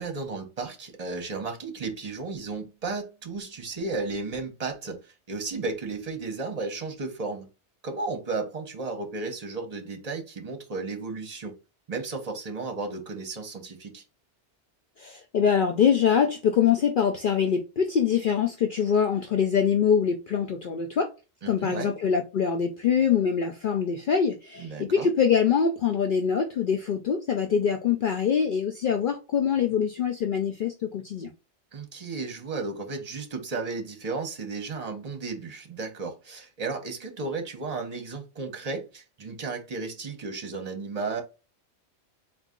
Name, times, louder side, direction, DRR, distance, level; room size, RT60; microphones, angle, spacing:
voice 1, 0.0-7.5 7.8-11.5 11.9-14.0 21.4-21.9 24.6-25.1 31.7-41.2, right 3 dB, 35° right, 1.0 m, -34 dB
voice 2, 15.0-21.1 21.5-31.3, left 7 dB, 60° left, 0.6 m, -24 dB
4.0 x 2.5 x 3.6 m
omnidirectional pair, 1.2 m